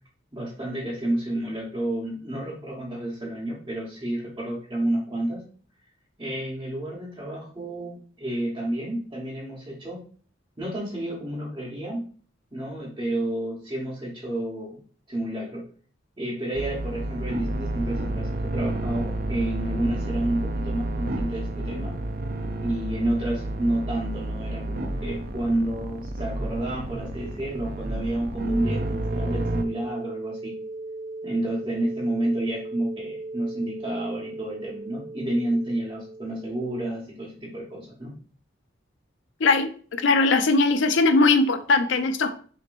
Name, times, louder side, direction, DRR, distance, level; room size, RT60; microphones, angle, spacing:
voice 1, 0.3-5.4 6.2-10.0 10.6-12.1 12.5-14.8 15.1-15.7 16.2-21.9 22.6-30.5 31.2-38.1, right 1 dB, 20° right, -7 dB, 1.2 m, -30 dB
sound 1, 16.5-29.6, right 1 dB, 50° right, 0.5 m, -30 dB
sound 2, 28.4-36.9, right 2 dB, 70° right, 1.7 m, -38 dB
voice 2, 40.0-42.3, left 3 dB, 70° left, 9 dB, 0.5 m, -20 dB
6.2 x 3.0 x 2.6 m, 0.43 s
head